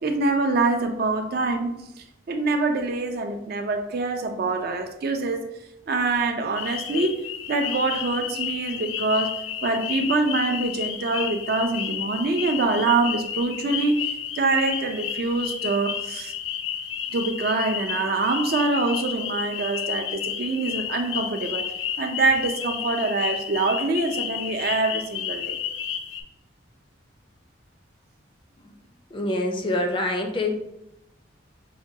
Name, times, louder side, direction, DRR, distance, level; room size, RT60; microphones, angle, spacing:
voice 1, 0.0-5.4 5.9-7.2 7.5-9.3 9.6-14.1 14.3-16.3 17.1-21.7 22.0-25.6, right 3 dB, 50° right, 6 dB, 0.4 m, -25 dB
sound 1, 6.5-26.2, left 9 dB, 90° left, 0.4 m, -31 dB
voice 2, 29.1-30.5, left 1 dB, 25° left, 3 dB, 0.4 m, -25 dB
5.7 x 2.2 x 2.7 m, 0.86 s
head